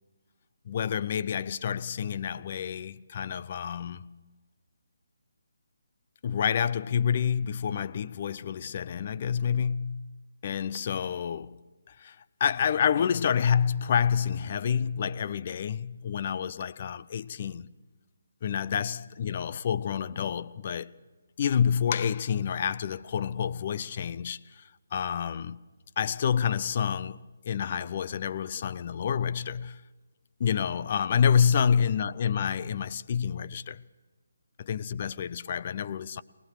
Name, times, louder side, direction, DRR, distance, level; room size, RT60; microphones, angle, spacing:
voice 1, 0.7-4.2 6.2-10.2 10.4-11.6 11.9-17.7 18.4-20.9 21.4-25.6 26.0-29.8 30.4-33.8 34.6-36.2, left 7 dB, 40° left, 0.5 m, -28 dB
23.0 x 19.0 x 6.5 m
figure-of-eight pair, 150°, 0 cm